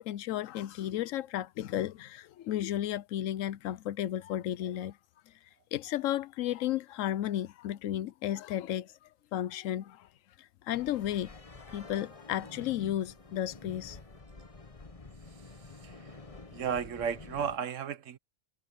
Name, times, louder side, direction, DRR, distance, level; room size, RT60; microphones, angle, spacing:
voice 1, 0.0-5.0 5.7-8.9 9.3-10.1 10.4-11.3 11.6-14.0, left 12 dB, 85° left, 1.0 m, -33 dB
sound 1, 10.7-17.6, left 3 dB, 30° left, 1.4 m, -49 dB
voice 2, 16.5-18.2, right 7 dB, 75° right, 1.3 m, -33 dB
omnidirectional pair, 1.3 m